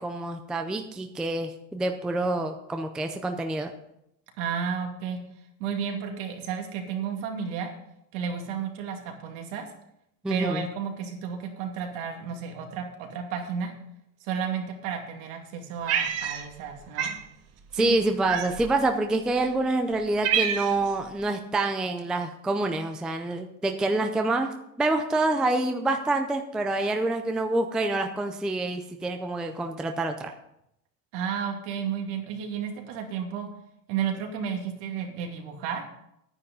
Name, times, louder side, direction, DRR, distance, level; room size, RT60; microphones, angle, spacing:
voice 1, 0.0-3.7 10.2-10.6 17.7-30.3, right 2 dB, ahead, 5 dB, 0.4 m, -27 dB
voice 2, 4.4-5.2 5.6-7.7 8.1-9.7 10.3-13.7 14.2-17.1 17.7-18.0 31.1-33.5 33.9-35.8, right 7 dB, 65° right, 2 dB, 2.6 m, -32 dB
Cat, 15.9-16.7 17.0-17.2 18.3-18.8 19.5-19.6 19.9-20.9, right 8 dB, 35° right, 1.2 m, -27 dB
10.0 x 9.8 x 5.3 m, 0.79 s
supercardioid pair, 150°, 40 cm